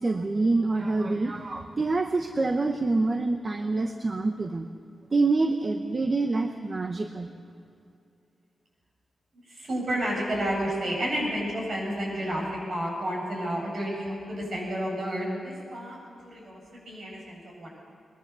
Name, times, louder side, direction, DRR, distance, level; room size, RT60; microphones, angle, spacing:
voice 1, 0.0-4.7 5.1-7.3, right 3 dB, 30° right, 6 dB, 0.9 m, -26 dB
voice 2, 9.5-17.7, equal, 50° right, -2 dB, 7.3 m, -31 dB
22.0 x 21.5 x 6.9 m, 2.5 s
wide cardioid pair, 175°, 0 cm